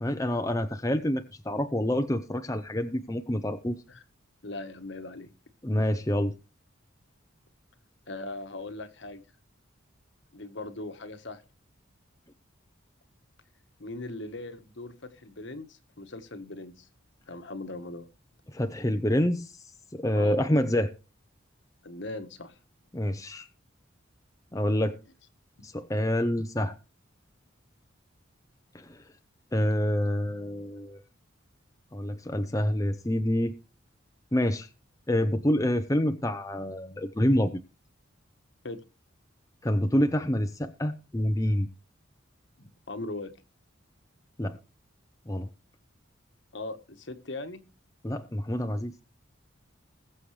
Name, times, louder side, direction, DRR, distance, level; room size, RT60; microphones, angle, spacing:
voice 1, 0.0-3.8 5.6-6.3 18.5-19.5 19.9-20.9 22.9-23.5 24.5-25.0 25.6-26.8 28.7-29.0 29.5-31.0 31.9-33.5 34.3-34.7 35.1-37.6 39.6-41.7 44.4-44.6 45.3-45.5 48.0-48.9, left 1 dB, 15° left, 0.7 m, -27 dB
voice 2, 4.4-5.3 8.1-9.2 10.3-11.4 13.8-16.9 17.3-18.1 20.1-20.5 21.8-22.6 38.6-38.8 42.6-43.3 46.5-47.6, left 2 dB, 65° left, 1.5 m, -39 dB
20.5 x 7.7 x 3.3 m
head